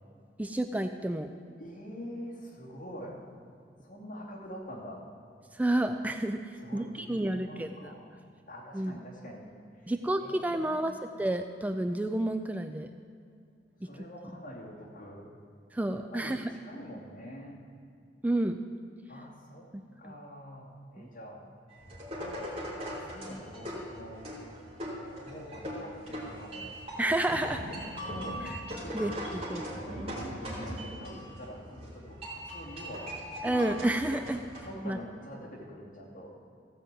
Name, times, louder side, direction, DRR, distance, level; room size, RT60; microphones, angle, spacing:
voice 1, 0.4-1.3 5.5-6.4 6.7-7.9 8.7-9.0 9.9-12.9 15.7-16.4 18.2-18.6 19.7-19.8 20.1-20.2 21.0-21.1 27.0-27.6 28.4-28.5 28.9-29.6 33.4-34.4 34.8-35.0, right 1 dB, 10° right, 7 dB, 0.3 m, -30 dB
voice 2, 1.6-3.2 3.8-5.0 6.6-8.1 8.5-9.9 10.2-11.0 13.8-15.3 16.1-17.6 19.1-19.7 20.0-21.5 22.1-24.2 24.7-24.8 25.1-26.7 28.0-28.5 28.8-29.0 29.7-33.1 34.2-36.3, equal, 50° left, -4 dB, 2.9 m, -45 dB
sound 1, 21.7-34.6, equal, 35° right, 2.9 m, -40 dB
15.5 x 5.1 x 7.6 m, 2.4 s
head